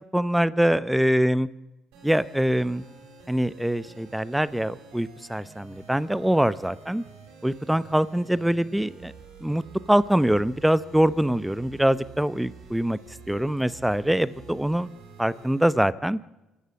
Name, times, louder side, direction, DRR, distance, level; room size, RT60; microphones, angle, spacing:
voice 1, 0.1-1.5 2.0-2.8 3.3-7.0 7.4-9.1 9.4-9.6 9.9-13.0 13.3-14.9 15.2-16.2, right 1 dB, 5° right, 17 dB, 0.8 m, -23 dB
sound 1, 1.9-15.6, right 4 dB, 80° right, 6.1 m, -48 dB
27.0 x 13.0 x 7.7 m, 1.0 s
supercardioid pair, 80°, 0 cm